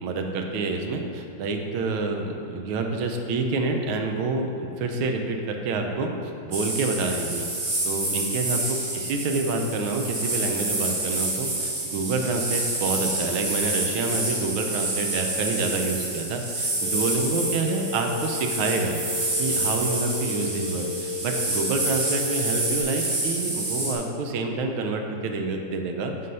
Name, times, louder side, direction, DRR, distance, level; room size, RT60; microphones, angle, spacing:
voice 1, 0.0-7.5 7.8-19.0 19.4-26.1, right 3 dB, 80° right, 3 dB, 1.5 m, -28 dB
sound 1, 6.5-23.9, right 2 dB, 35° right, 0.8 m, -28 dB
Telephone, 16.8-22.8, left 5 dB, 85° left, 1.6 m, -34 dB
7.5 x 4.0 x 5.3 m, 2.5 s
omnidirectional pair, 2.3 m